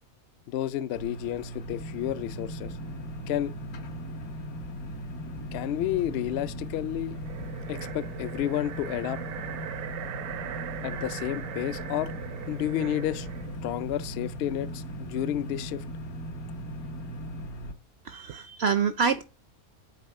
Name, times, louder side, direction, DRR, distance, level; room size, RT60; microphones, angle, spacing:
voice 1, 0.5-2.8 3.3-3.5 5.5-7.2 7.7-9.2 10.8-12.1 12.5-13.3 13.6-15.8, left 12 dB, 70° left, 0.6 m, -31 dB
sound 1, 0.9-17.7, right 2 dB, 85° left, 1.4 m, -40 dB
sound 2, 1.7-17.5, left 2 dB, 25° left, 0.4 m, -42 dB
sound 3, 7.1-13.6, right 11 dB, 85° right, 1.1 m, -40 dB
voice 2, 18.0-19.2, right 6 dB, 65° right, 0.6 m, -26 dB
7.1 x 4.2 x 4.5 m
omnidirectional pair, 1.5 m